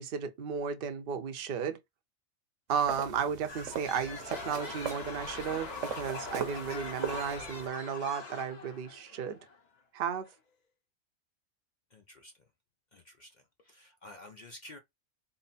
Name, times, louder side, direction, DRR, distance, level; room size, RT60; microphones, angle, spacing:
voice 1, 0.0-1.8 2.7-9.4 9.9-10.3, right 7 dB, 55° right, 0.7 m, -34 dB
sound 1, 2.7-7.7, right 7 dB, 70° right, 1.1 m, -40 dB
sound 2, 3.2-3.5 3.8-9.6 10.3-10.4, left 4 dB, 40° left, 0.8 m, -44 dB
sound 3, 3.5-8.5, left 4 dB, 20° left, 1.0 m, -46 dB
voice 2, 11.9-12.3 12.9-13.3 13.7-14.8, left 1 dB, 65° left, 0.4 m, -50 dB
3.9 x 2.0 x 4.0 m
omnidirectional pair, 1.4 m